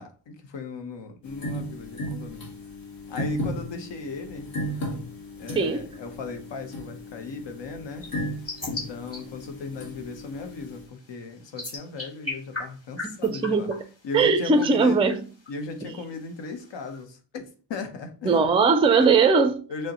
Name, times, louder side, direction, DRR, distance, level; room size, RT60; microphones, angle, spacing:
voice 1, 0.0-2.5 3.1-4.5 5.4-8.1 8.6-13.7 14.0-15.0 15.5-18.5 19.0-19.1 19.7-19.9, left 4 dB, 70° left, 0.9 m, -37 dB
sound 1, 1.2-10.8, equal, 50° left, 1.2 m, -35 dB
voice 2, 5.5-5.8 13.2-13.8 14.1-15.2 15.8-15.9 18.2-19.6, right 4 dB, 15° right, 0.3 m, -20 dB
sound 2, 8.0-17.0, left 3 dB, 30° left, 1.9 m, -41 dB
6.2 x 2.1 x 2.9 m
wide cardioid pair, 125°, 45 cm